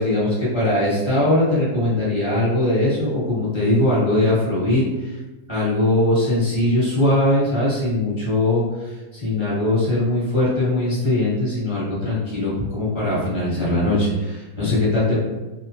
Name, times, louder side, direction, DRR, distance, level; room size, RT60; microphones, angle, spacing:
voice 1, 0.0-5.2 5.5-15.2, left 1 dB, 20° left, -8 dB, 0.9 m, -20 dB
2.8 x 2.1 x 2.6 m, 1.1 s
omnidirectional pair, 1.7 m